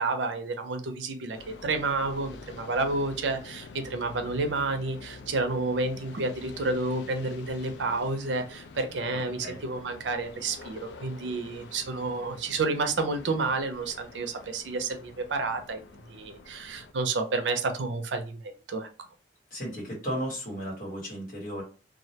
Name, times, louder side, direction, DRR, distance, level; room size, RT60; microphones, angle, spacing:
voice 1, 0.0-15.8 16.1-19.1, right 3 dB, 90° right, 6 dB, 0.5 m, -30 dB
sound 1, 1.3-16.9, left 4 dB, 70° left, 0.3 m, -47 dB
voice 2, 19.5-21.6, equal, 50° left, -3 dB, 1.2 m, -34 dB
2.3 x 2.1 x 2.7 m, 0.34 s
head